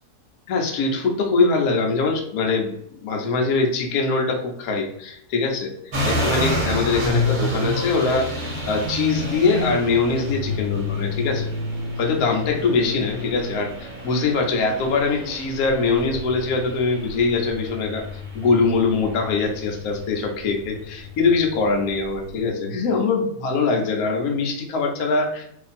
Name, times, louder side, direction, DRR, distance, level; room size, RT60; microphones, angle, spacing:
voice 1, 0.5-2.7 3.0-5.7 6.1-11.5 12.0-18.0 18.3-25.4, left 4 dB, 70° left, 1 dB, 1.1 m, -22 dB
sound 1, 5.9-22.4, left 1 dB, 40° right, 0.8 m, -29 dB
2.8 x 2.5 x 4.0 m, 0.71 s
omnidirectional pair, 1.7 m